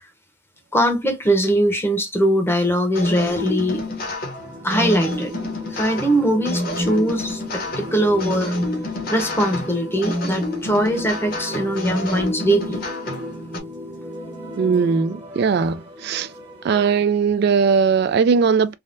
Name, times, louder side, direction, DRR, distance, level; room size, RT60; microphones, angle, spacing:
voice 1, 0.7-3.8 4.6-5.3 5.7-8.6 9.1-12.8, right 1 dB, 10° left, 0.7 m, -21 dB
sound 1, 2.9-13.6, left 1 dB, 50° left, 0.9 m, -28 dB
sound 2, 4.3-17.0, equal, 25° right, 0.9 m, -36 dB
voice 2, 14.6-16.3 16.6-18.7, right 5 dB, 55° right, 0.3 m, -19 dB
3.4 x 2.1 x 2.5 m
head